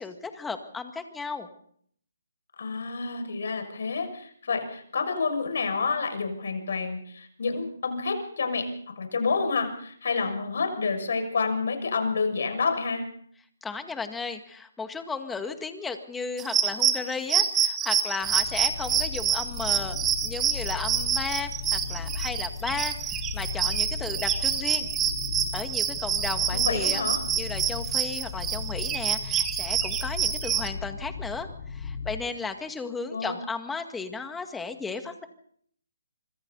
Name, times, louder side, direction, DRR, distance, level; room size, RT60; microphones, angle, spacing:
voice 1, 0.0-1.5 13.6-24.9 25.5-27.0 27.3-35.2, left 4 dB, 5° left, 7 dB, 2.0 m, -35 dB
voice 2, 2.6-8.7 9.0-13.0 26.5-27.2 33.1-33.3, left 4 dB, 65° left, 6 dB, 6.4 m, -29 dB
sound 1, 16.4-30.7, right 9 dB, 15° right, 1.5 m, -27 dB
sound 2, 18.2-32.1, left 5 dB, 45° left, 4.7 m, -36 dB
26.0 x 25.5 x 4.1 m, 0.64 s
hypercardioid pair, 150°, 0 cm